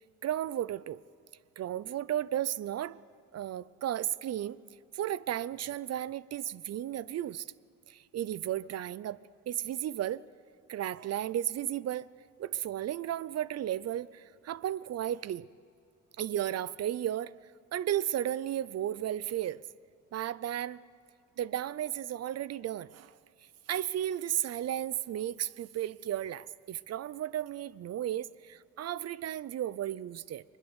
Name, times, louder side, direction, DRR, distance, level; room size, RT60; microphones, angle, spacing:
voice 1, 0.2-1.0 1.6-3.0 3.3-4.6 4.9-7.5 7.9-9.2 9.5-10.2 10.7-12.1 12.4-15.5 16.2-17.3 17.7-19.6 20.1-20.8 21.4-23.1 23.7-30.4, right 11 dB, 55° right, 19 dB, 0.5 m, -34 dB
21.0 x 20.5 x 8.1 m, 2.5 s
cardioid pair, 90°, 30 cm